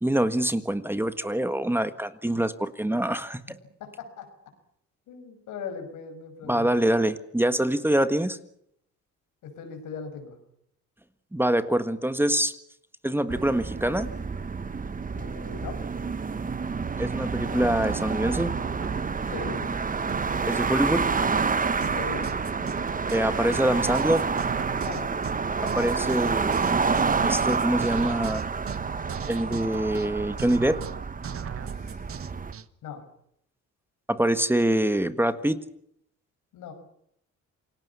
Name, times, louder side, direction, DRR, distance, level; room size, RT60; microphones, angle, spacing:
voice 1, 0.0-3.4 6.5-8.4 11.3-12.6 13.0-14.1 16.9-18.6 20.5-21.1 23.1-24.3 25.6-26.6 27.2-28.5 29.3-30.8 34.1-35.6, right 1 dB, 5° right, 11 dB, 1.6 m, -25 dB
voice 2, 3.8-4.3 5.1-6.9 9.4-10.4 15.1-15.8 19.3-19.7 21.9-22.3 24.8-25.2 31.6-32.0 32.8-33.0 36.5-36.7, left 5 dB, 85° left, 6 dB, 6.0 m, -39 dB
sound 1, 13.3-32.5, right 5 dB, 25° right, 1.3 m, -28 dB
sound 2, 18.4-32.7, right 8 dB, 50° right, 1.3 m, -38 dB
28.0 x 19.0 x 7.0 m, 0.71 s
cardioid pair, 90°, 30 cm